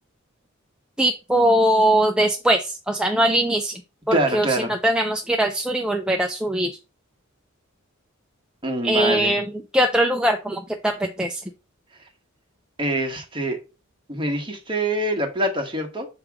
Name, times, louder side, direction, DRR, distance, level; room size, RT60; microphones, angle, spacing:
voice 1, 1.0-3.8 4.1-6.8 8.8-11.5, right 1 dB, 5° right, 0.5 m, -21 dB
voice 2, 4.1-4.7 8.6-9.3 12.8-13.6 14.1-16.1, right 1 dB, 25° right, 1.4 m, -25 dB
7.2 x 3.2 x 4.8 m
head